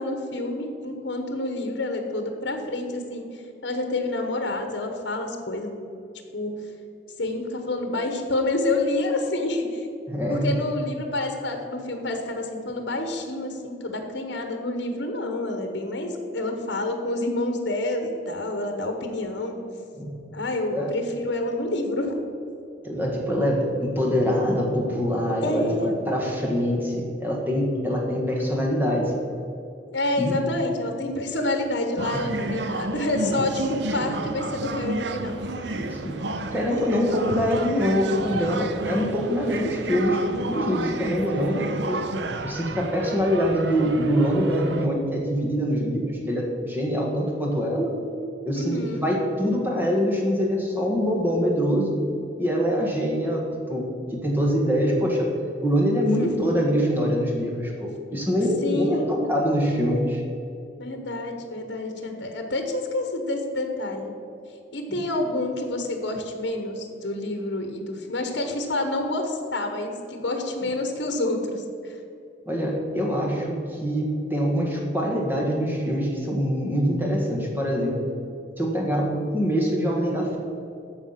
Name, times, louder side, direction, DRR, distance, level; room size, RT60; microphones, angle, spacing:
voice 1, 0.0-5.7 6.3-6.5 7.2-9.9 10.3-19.6 20.3-22.1 25.4-25.9 29.9-35.3 48.5-49.0 56.0-56.5 58.6-59.2 60.8-64.1 64.7-72.0, left 2 dB, 75° left, 5 dB, 1.1 m, -28 dB
voice 2, 10.1-10.5 20.0-20.1 20.7-20.9 22.8-29.1 30.2-30.4 32.1-32.3 35.8-36.2 36.5-42.0 42.4-47.9 48.4-52.0 52.4-53.8 54.1-55.3 55.6-60.2 64.9-65.0 72.4-78.0 78.6-80.4, equal, 10° right, -1 dB, 1.6 m, -24 dB
sound 1, 32.0-44.9, right 2 dB, 70° right, 0.7 m, -31 dB
13.5 x 4.8 x 5.8 m, 2.7 s
head